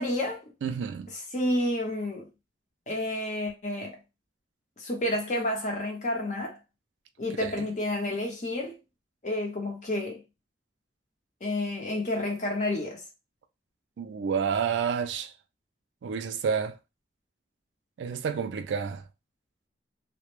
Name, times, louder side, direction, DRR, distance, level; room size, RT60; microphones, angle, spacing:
voice 1, 0.0-0.5 1.1-2.3 2.9-4.0 4.8-6.6 7.2-8.8 9.2-10.2 11.4-13.0, left 1 dB, 40° left, 0.7 m, -30 dB
voice 2, 0.6-1.1 7.4-7.5 14.0-15.3 16.0-16.8 18.0-19.0, right 6 dB, 90° right, 0.3 m, -29 dB
2.1 x 2.0 x 3.0 m
head